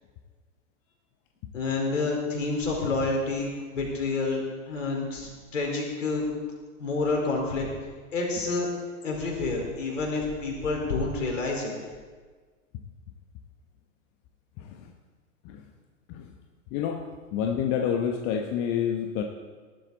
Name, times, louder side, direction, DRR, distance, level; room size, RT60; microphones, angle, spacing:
voice 1, 1.5-6.2 6.8-7.7 8.1-8.7 9.0-11.7, left 3 dB, 65° left, 0 dB, 4.6 m, -28 dB
voice 2, 16.7-17.0 17.3-19.2, left 8 dB, 35° left, 4 dB, 1.1 m, -27 dB
19.5 x 12.0 x 4.1 m, 1.5 s
figure-of-eight pair, 100°, 40 cm